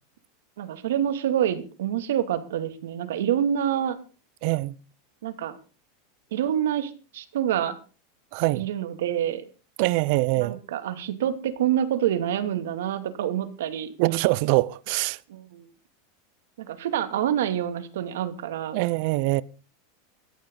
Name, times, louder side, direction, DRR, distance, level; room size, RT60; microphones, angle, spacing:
voice 1, 0.6-4.0 5.2-5.5 6.3-7.8 8.5-9.4 10.4-13.9 15.3-15.7 16.6-18.8, right 10 dB, 90° right, 2.6 m, -27 dB
voice 2, 4.4-4.8 8.3-8.6 9.8-10.6 14.0-15.2 18.7-19.4, right 21 dB, 50° right, 0.7 m, -23 dB
18.0 x 14.0 x 4.0 m
supercardioid pair, 170°, 0 cm